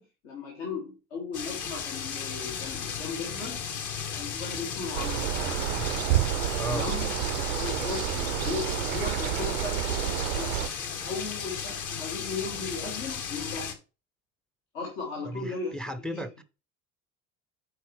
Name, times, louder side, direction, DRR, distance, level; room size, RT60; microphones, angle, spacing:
voice 1, 0.0-3.6 4.1-5.6 6.7-10.7 11.0-13.7 14.7-15.8 16.1-16.2, left 4 dB, 65° left, 2.5 m, -37 dB
sound 1, 1.3-13.7, left 7 dB, 45° left, 1.5 m, -35 dB
sound 2, 4.9-10.7, right 14 dB, 75° right, 0.6 m, -29 dB
voice 2, 15.2-16.4, right 1 dB, ahead, 0.6 m, -35 dB
9.6 x 4.4 x 3.2 m
figure-of-eight pair, 60°, 42 cm